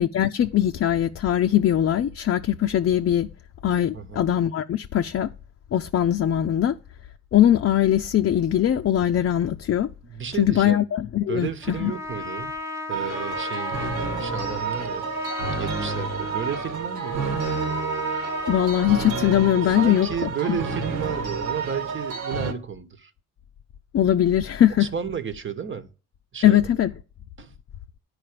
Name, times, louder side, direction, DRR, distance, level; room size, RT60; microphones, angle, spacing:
voice 1, 0.0-3.3 3.6-5.3 5.7-6.7 7.3-9.9 10.4-11.5 11.8-11.9 18.5-20.6 23.9-24.9 26.4-26.9, left 11 dB, 45° left, 0.6 m, -21 dB
voice 2, 3.9-4.2 10.0-10.8 11.3-12.5 12.9-15.0 15.6-17.3 19.7-23.1 24.8-25.9 26.3-26.7 27.4-27.5, right 7 dB, 40° right, 1.2 m, -32 dB
Trumpet, 11.6-19.3, left 2 dB, 10° right, 1.3 m, -34 dB
sound 1, 12.9-22.5, right 5 dB, 85° right, 1.8 m, -30 dB
10.0 x 4.8 x 6.6 m
cardioid pair, 90°, 30 cm